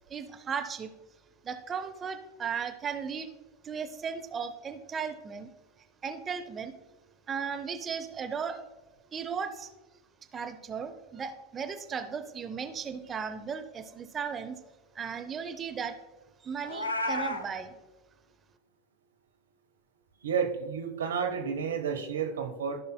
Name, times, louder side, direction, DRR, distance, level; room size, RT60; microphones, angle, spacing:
voice 1, 0.1-0.9 1.4-3.3 3.6-5.5 6.0-6.7 7.3-8.6 9.1-9.7 10.3-14.6 14.9-15.9 16.4-17.8, right 6 dB, 25° right, 7 dB, 0.7 m, -36 dB
Meow, 16.6-17.4, left 1 dB, 85° left, 0.7 m, -31 dB
voice 2, 20.2-22.8, right 6 dB, 75° right, 5 dB, 0.9 m, -31 dB
15.0 x 5.5 x 2.2 m, 1.1 s
figure-of-eight pair, 85°, 0 cm